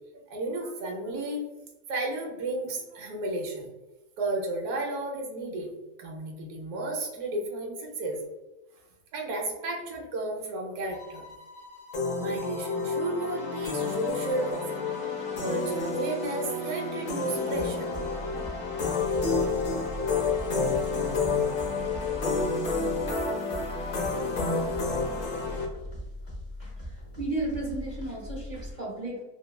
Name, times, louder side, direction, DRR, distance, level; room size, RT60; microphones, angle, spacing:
voice 1, 0.1-1.5 1.9-3.7 4.2-5.7 6.0-8.2 9.1-11.2 12.1-14.8 15.4-17.9, right 2 dB, 75° right, 0 dB, 1.2 m, -33 dB
sound 1, 10.9-19.3, left 2 dB, 75° left, 1.2 m, -49 dB
sound 2, 11.9-25.7, left 4 dB, 60° left, 0.9 m, -29 dB
sound 3, 17.5-28.7, left 1 dB, 40° left, 0.6 m, -40 dB
voice 2, 26.6-29.2, right 2 dB, 45° right, -4 dB, 0.6 m, -34 dB
3.2 x 2.1 x 2.2 m, 1.1 s
omnidirectional pair, 1.6 m